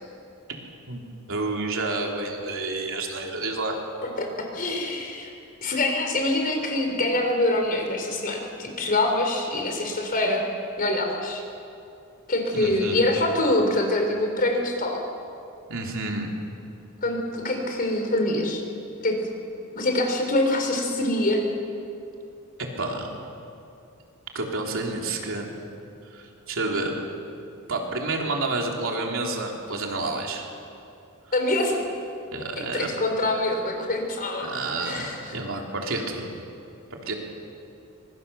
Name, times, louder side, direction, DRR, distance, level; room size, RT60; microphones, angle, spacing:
voice 1, 1.3-3.8 12.5-13.0 15.7-16.3 22.6-23.2 24.3-25.5 26.1-27.0 27.7-30.5 32.3-32.9 34.4-36.3 36.9-37.1, right 2 dB, 65° right, 0 dB, 3.5 m, -29 dB
voice 2, 4.2-5.3 5.6-10.4 10.8-11.4 12.3-15.0 17.0-18.6 19.0-19.2 19.7-21.4 31.3-31.8 32.7-34.5 34.8-35.2, left 1 dB, 40° left, 3 dB, 4.2 m, -25 dB
25.5 x 22.5 x 7.0 m, 2.6 s
head